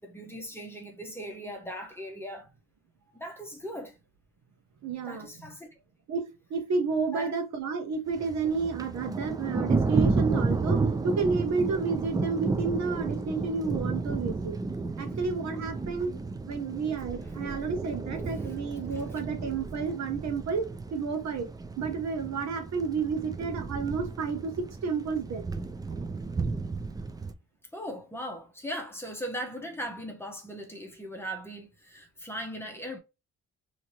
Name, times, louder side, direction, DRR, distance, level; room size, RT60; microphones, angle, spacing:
voice 1, 0.0-2.5 3.1-4.0 5.0-5.7 7.1-7.3 18.4-18.5 18.9-19.2 27.7-33.0, equal, 10° left, 0.9 m, -39 dB
voice 2, 4.8-5.3 6.1-14.6 15.0-16.1 16.5-21.5 21.8-25.4, right 5 dB, 65° right, 0.9 m, -31 dB
Thunder, 8.1-27.3, right 3 dB, 15° right, 0.3 m, -32 dB
2.8 x 2.8 x 2.9 m
cardioid pair, 90°, 30 cm